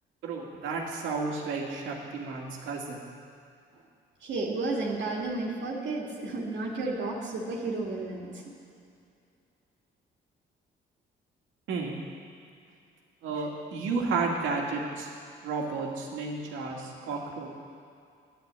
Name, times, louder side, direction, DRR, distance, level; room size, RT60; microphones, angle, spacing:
voice 1, 0.2-3.0 11.7-12.0 13.2-15.1 15.4-17.5, right 4 dB, 85° right, 0 dB, 2.1 m, -32 dB
voice 2, 4.2-8.5, right 2 dB, 65° right, -3 dB, 2.0 m, -32 dB
10.5 x 9.6 x 8.1 m, 2.4 s
cardioid pair, 90°, 20 cm